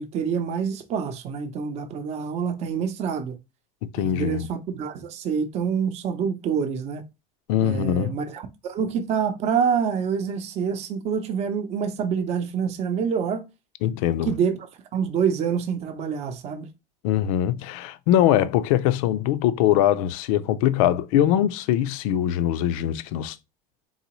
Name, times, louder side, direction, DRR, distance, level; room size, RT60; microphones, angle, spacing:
voice 1, 0.0-3.4 4.0-7.0 7.6-13.5 14.2-14.7 14.9-16.7, right 7 dB, 35° right, 0.7 m, -26 dB
voice 2, 3.9-4.5 7.5-8.2 13.8-14.3 17.0-23.4, left 11 dB, 75° left, 0.5 m, -22 dB
4.0 x 3.8 x 3.0 m
cardioid pair, 150°, 18 cm